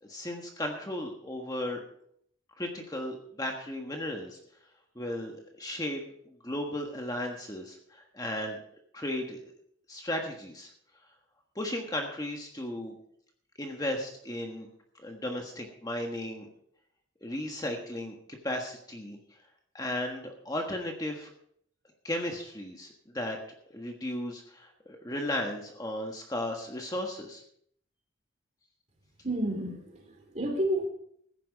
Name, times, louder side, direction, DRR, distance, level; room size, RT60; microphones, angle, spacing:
voice 1, 0.0-1.8 2.6-4.4 4.9-8.6 8.9-9.5 9.9-10.7 11.5-12.9 13.6-14.7 14.9-16.5 17.2-18.2 18.4-19.2 19.7-21.3 22.0-22.9 23.1-23.4 23.7-27.4, left 1 dB, 20° left, 2 dB, 1.4 m, -35 dB
voice 2, 29.2-30.9, right 1 dB, 35° right, 3 dB, 3.3 m, -31 dB
15.0 x 10.5 x 4.7 m, 0.66 s
head